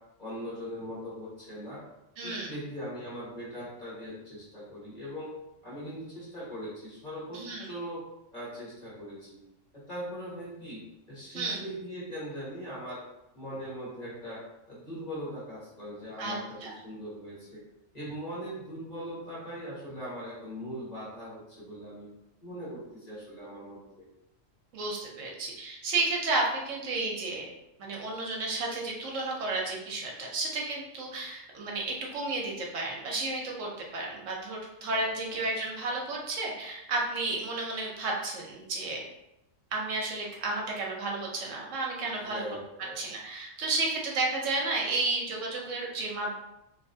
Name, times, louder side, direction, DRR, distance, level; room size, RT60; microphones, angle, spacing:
voice 1, 0.2-1.8 2.2-5.3 5.6-8.0 8.3-9.4 9.7-10.8 11.1-13.0 13.3-17.6 17.9-22.1 22.4-24.1 34.9-35.0 35.3-35.5 42.1-43.0, equal, 35° left, -8 dB, 1.4 m, -40 dB
voice 2, 2.2-2.5 7.3-7.7 11.3-11.6 16.2-16.7 24.7-27.5 27.8-39.0 39.7-42.4 43.0-46.3, right 3 dB, 80° right, -1 dB, 1.1 m, -32 dB
3.2 x 2.8 x 2.6 m, 0.88 s
omnidirectional pair, 1.3 m